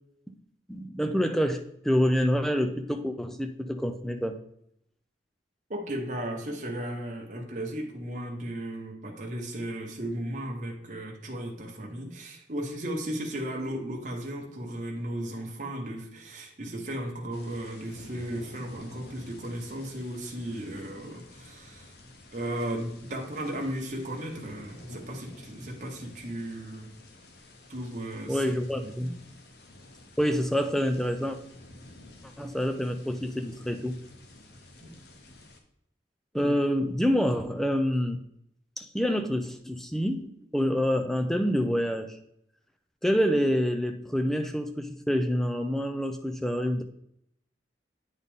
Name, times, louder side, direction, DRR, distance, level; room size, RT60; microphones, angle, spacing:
voice 1, 0.7-4.4 28.3-29.1 30.2-31.4 32.4-34.0 36.3-38.2 38.8-42.2 43.0-46.8, equal, ahead, 7 dB, 0.4 m, -27 dB
voice 2, 5.7-21.9 22.3-26.9 27.7-28.4 28.8-29.1 34.8-34.9 36.3-36.5, right 1 dB, 45° right, 0 dB, 1.1 m, -35 dB
sound 1, 17.3-35.6, left 2 dB, 60° left, 0.9 m, -51 dB
8.7 x 4.1 x 3.6 m, 0.75 s
head